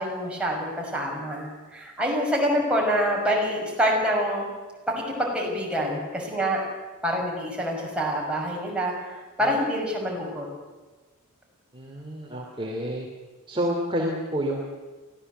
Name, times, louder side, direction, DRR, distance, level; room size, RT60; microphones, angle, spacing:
voice 1, 0.0-4.5 5.0-6.6 7.0-8.9 9.4-10.5, equal, 5° right, -2 dB, 6.2 m, -26 dB
voice 2, 11.7-13.1 13.5-14.6, equal, 25° right, -1 dB, 3.0 m, -29 dB
24.0 x 16.5 x 8.1 m, 1.3 s
head